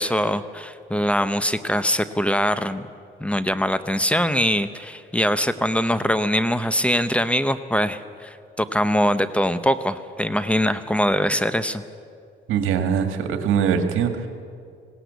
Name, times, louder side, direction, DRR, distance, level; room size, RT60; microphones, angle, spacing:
voice 1, 0.0-2.9 3.2-11.8, equal, 5° left, 12 dB, 0.9 m, -22 dB
voice 2, 12.5-14.3, right 7 dB, 90° right, 7 dB, 1.9 m, -22 dB
19.5 x 17.0 x 8.2 m, 2.3 s
cardioid pair, 90°, 20 cm